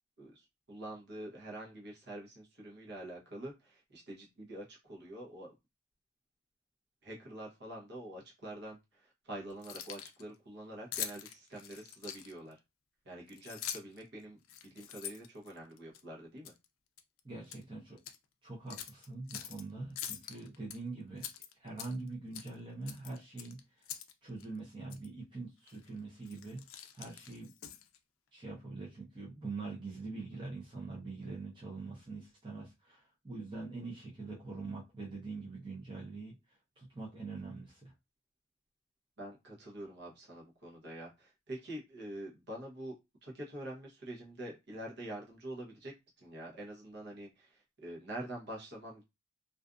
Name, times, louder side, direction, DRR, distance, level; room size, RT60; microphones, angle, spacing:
voice 1, 0.2-5.5 7.0-12.6 13.0-14.4 14.6-16.5 39.2-45.9 46.2-49.0, right 1 dB, 55° right, 0.9 m, -46 dB
Keys jangling, 9.5-10.2 10.9-12.5 13.3-14.0 14.4-16.0 16.4-16.6 17.0-17.6 18.0-18.2 18.7-19.6 20.0-20.8 21.2-22.1 22.3-22.5 22.9-24.1 24.4-24.5 24.9-25.1 25.7-25.9 26.2-28.0, left 10 dB, 75° left, 0.4 m, -44 dB
voice 2, 17.2-18.0 18.4-21.3 21.6-23.8 24.2-26.6 26.9-27.5 28.3-36.3 36.8-37.9, right 3 dB, 25° right, 0.7 m, -44 dB
2.5 x 2.4 x 2.4 m
head